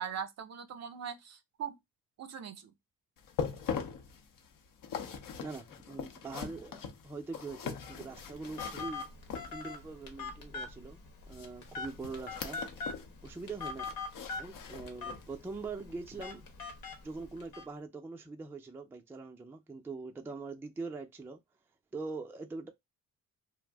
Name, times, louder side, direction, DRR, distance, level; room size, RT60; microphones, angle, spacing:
voice 1, 0.0-1.8 2.2-2.7, right 7 dB, 50° right, 0.6 m, -40 dB
sound 1, 3.2-9.9 11.3-13.1 13.4-15.4 15.8-16.0 16.5-16.6, left 7 dB, 70° left, 0.7 m, -41 dB
voice 2, 5.4-9.0 9.5-11.0 11.3-12.6 13.2-13.9 14.4-16.5 17.0-21.4 21.9-22.7, right 3 dB, 5° right, 0.4 m, -43 dB
Telephone, 7.8-17.6, left 4 dB, 90° left, 1.0 m, -43 dB
2.5 x 2.0 x 3.3 m
cardioid pair, 105°, 34 cm